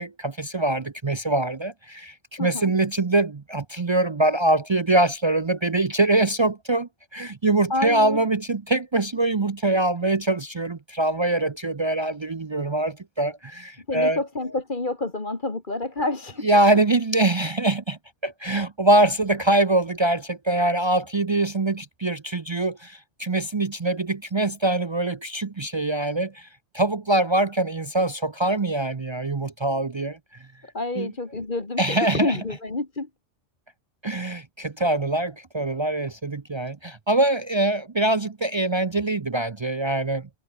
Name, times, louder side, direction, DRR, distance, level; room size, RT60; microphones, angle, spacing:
voice 1, 0.0-14.2 16.4-26.5 26.7-30.2 31.0-31.1 31.8-32.4 34.0-40.3, right 2 dB, 35° right, 0.5 m, -23 dB
voice 2, 2.4-2.7 7.7-8.3 13.9-16.5 30.6-33.1, left 2 dB, 40° left, 2.6 m, -28 dB
omnidirectional pair, 1.2 m